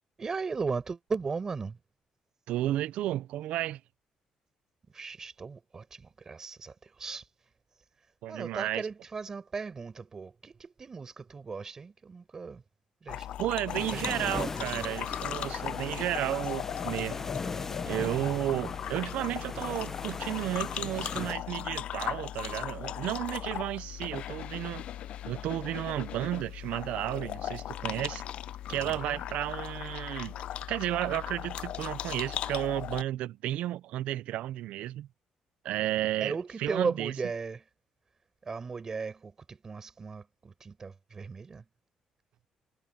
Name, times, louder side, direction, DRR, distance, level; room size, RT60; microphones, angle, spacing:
voice 1, 0.2-1.8 4.9-7.3 8.3-12.6 13.0-13.3 13.9-14.9 28.8-29.2 36.2-37.7 38.4-41.7, right 5 dB, 25° right, 5.2 m, -37 dB
voice 2, 2.5-3.8 8.2-8.8 13.4-17.2 17.9-24.9 25.2-28.2 28.7-30.3 30.7-35.1 35.6-36.4 36.6-37.1, right 14 dB, 90° right, 0.6 m, -33 dB
sound 1, 13.1-33.0, left 11 dB, 60° left, 0.4 m, -38 dB
sound 2, 13.7-21.3, left 3 dB, 20° left, 0.7 m, -39 dB
cardioid pair, 160°, 2 cm